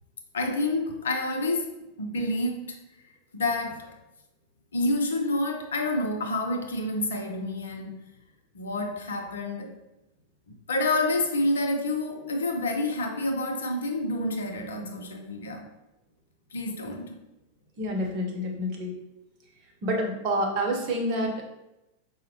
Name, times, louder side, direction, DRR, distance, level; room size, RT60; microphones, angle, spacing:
voice 1, 0.3-2.8 3.3-3.9 4.7-8.0 8.5-9.8 10.5-15.7 16.5-17.2, left 2 dB, 65° left, 3 dB, 0.5 m, -28 dB
voice 2, 17.8-19.0 19.8-21.4, equal, 40° right, 1 dB, 0.8 m, -28 dB
4.9 x 2.0 x 2.9 m, 0.93 s
figure-of-eight pair, 90°, 0 cm